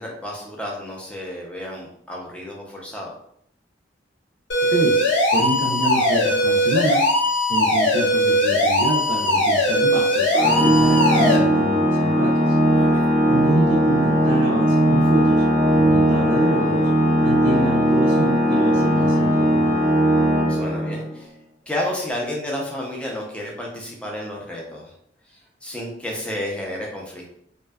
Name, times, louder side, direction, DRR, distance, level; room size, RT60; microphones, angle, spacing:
voice 1, 0.0-3.1 12.7-13.1 20.5-21.3 21.6-24.9 25.3-27.4, left 1 dB, 5° left, -2 dB, 0.5 m, -31 dB
sound 1, 4.5-11.4, left 1 dB, 70° left, 0.6 m, -19 dB
voice 2, 5.3-7.1 7.5-12.5 13.3-15.4 15.7-16.9 17.2-19.8, right 2 dB, 80° right, -3 dB, 0.5 m, -27 dB
Organ, 10.3-21.2, right 1 dB, 40° right, 0.6 m, -18 dB
2.6 x 2.2 x 2.2 m, 0.69 s
head